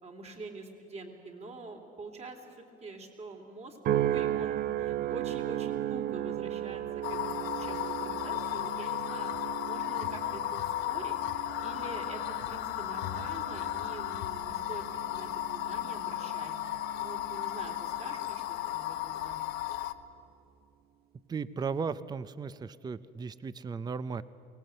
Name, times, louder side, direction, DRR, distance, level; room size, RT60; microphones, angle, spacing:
voice 1, 0.0-6.8 7.1-9.3 9.6-11.2 11.6-16.5 17.0-19.5, right 3 dB, 40° right, 3 dB, 3.2 m, -45 dB
sound 1, 3.8-18.3 18.9-19.3, right 12 dB, 65° right, 0.6 m, -36 dB
sound 2, 7.0-19.9, left 14 dB, 90° left, 0.8 m, -35 dB
voice 2, 21.3-24.2, right 5 dB, 25° right, 16 dB, 0.5 m, -36 dB
23.5 x 19.0 x 7.8 m, 2.8 s
cardioid pair, 110°, 17 cm